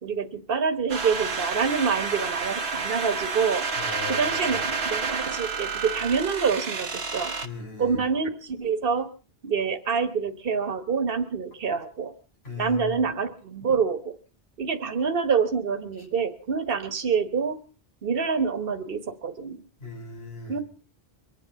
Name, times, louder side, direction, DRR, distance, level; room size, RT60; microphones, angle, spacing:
voice 1, 0.0-3.7 4.1-7.3 7.8-9.1 9.4-12.1 12.5-14.1 14.6-17.6 18.0-19.6 20.5-20.6, right 5 dB, 65° right, 8 dB, 1.5 m, -26 dB
sound 1, 0.9-7.5, right 4 dB, 90° right, 1.5 m, -30 dB
voice 2, 3.8-4.6 7.4-8.0 12.4-13.0 19.8-20.6, left 3 dB, 85° left, -1 dB, 6.3 m, -37 dB
23.5 x 8.8 x 6.9 m, 0.39 s
omnidirectional pair, 1.0 m